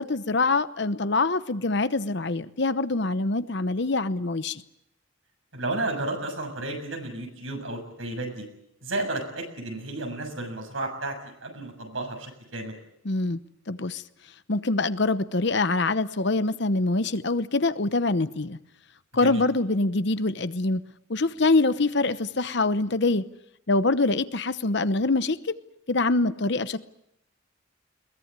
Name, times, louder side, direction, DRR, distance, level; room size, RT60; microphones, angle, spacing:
voice 1, 0.0-4.6 13.0-13.4 13.7-14.0 14.5-18.6 19.1-20.8 21.1-23.3 23.7-25.5 25.9-26.8, left 3 dB, 60° left, 13 dB, 0.9 m, -24 dB
voice 2, 5.5-8.5 8.8-12.8 19.1-19.5, right 2 dB, 80° right, 4 dB, 6.9 m, -32 dB
22.0 x 19.5 x 9.7 m, 0.80 s
head